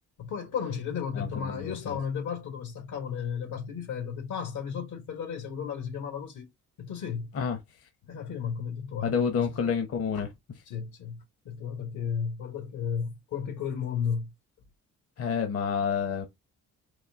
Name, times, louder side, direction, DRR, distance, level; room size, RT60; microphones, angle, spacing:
voice 1, 0.2-6.5 6.8-7.3 8.1-9.5 10.1-10.3 10.7-14.3, left 7 dB, 80° left, 1.5 m, -34 dB
voice 2, 1.2-2.0 7.3-7.6 9.0-10.3 15.2-16.3, left 6 dB, 50° left, 1.0 m, -29 dB
4.2 x 2.7 x 3.5 m
cardioid pair, 90°, 30 cm